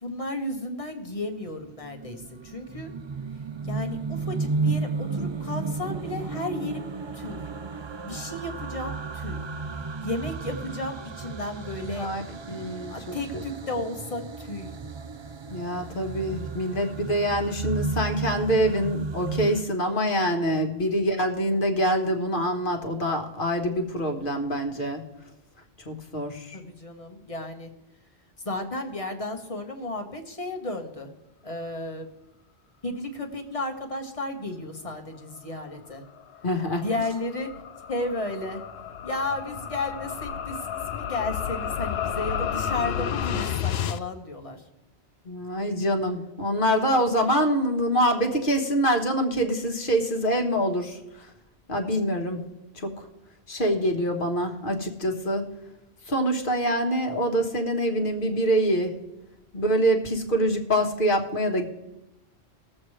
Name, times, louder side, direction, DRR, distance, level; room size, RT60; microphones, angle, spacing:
voice 1, 0.0-2.9 3.6-7.4 8.0-9.4 10.0-12.1 12.9-14.7 26.5-27.7 28.4-31.1 31.4-32.1 32.8-36.0 36.8-37.5 37.9-38.6 39.0-44.6 51.9-52.0, left 2 dB, 30° left, 3 dB, 1.4 m, -33 dB
sound 1, 1.6-19.6, right 4 dB, 40° right, 0.4 m, -33 dB
voice 2, 12.5-13.4 15.5-25.0 25.8-26.6 36.4-36.8 45.2-51.3 51.7-52.4 52.7-53.1 53.5-55.5 56.1-58.9 59.5-61.7, equal, 50° left, 3 dB, 1.5 m, -25 dB
sound 2, 36.2-44.0, left 8 dB, 70° left, 0.8 m, -31 dB
20.0 x 7.6 x 3.2 m, 0.96 s
omnidirectional pair, 1.1 m